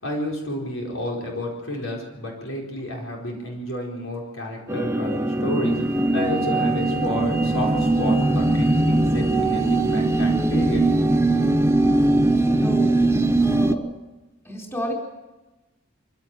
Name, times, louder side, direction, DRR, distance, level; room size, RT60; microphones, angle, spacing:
voice 1, 0.0-10.8, left 1 dB, 75° left, -1 dB, 4.7 m, -31 dB
sound 1, 4.7-13.8, right 2 dB, 15° right, 1.0 m, -20 dB
voice 2, 12.6-13.8 14.4-14.9, equal, 10° left, 0 dB, 4.3 m, -32 dB
24.0 x 16.5 x 7.7 m, 1.1 s
head